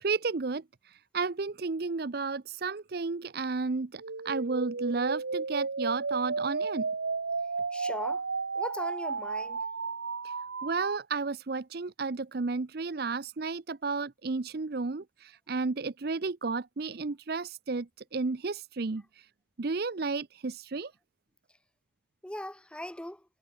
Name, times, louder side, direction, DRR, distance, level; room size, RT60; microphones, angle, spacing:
voice 1, 0.0-6.9 10.2-10.3 10.6-19.3 19.6-20.9, right 4 dB, 50° right, 0.6 m, -32 dB
sound 1, 4.0-11.0, right 4 dB, 85° right, 1.1 m, -33 dB
voice 2, 7.7-8.2 8.5-9.6 22.2-23.2, left 1 dB, 5° left, 0.7 m, -39 dB
head